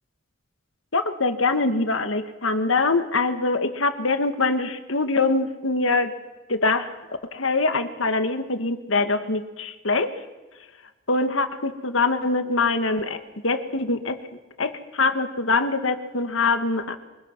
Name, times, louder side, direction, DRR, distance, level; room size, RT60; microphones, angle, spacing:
voice 1, 0.9-6.1 6.5-6.9 7.3-10.2 11.1-14.2 14.6-17.0, left 3 dB, 85° left, 8 dB, 1.7 m, -23 dB
24.0 x 22.0 x 6.1 m, 1.1 s
head